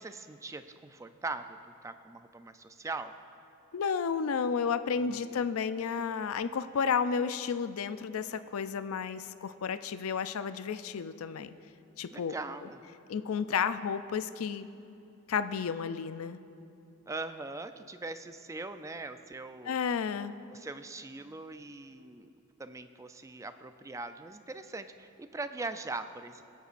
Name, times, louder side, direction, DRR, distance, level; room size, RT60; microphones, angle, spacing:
voice 1, 0.0-1.6 1.8-3.1 5.1-5.4 12.1-12.8 17.1-19.7 20.5-22.3 22.6-26.4, right 3 dB, 15° right, 10 dB, 0.3 m, -41 dB
voice 2, 3.7-11.5 12.0-12.3 13.1-14.7 15.3-16.4 19.6-20.3, left 6 dB, 70° left, 12 dB, 0.4 m, -32 dB
24.5 x 8.2 x 2.5 m, 2.8 s
head